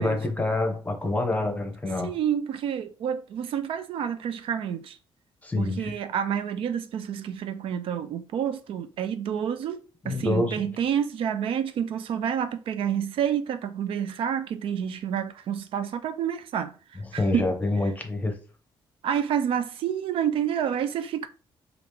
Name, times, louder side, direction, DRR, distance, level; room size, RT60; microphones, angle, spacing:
voice 1, 0.0-2.1 5.4-5.9 10.0-10.6 17.1-18.3, left 2 dB, 15° left, 0.9 m, -26 dB
voice 2, 2.0-5.0 5.6-17.5 19.0-21.3, right 8 dB, 70° right, 0.4 m, -29 dB
3.0 x 2.5 x 3.4 m
cardioid pair, 90°, 10 cm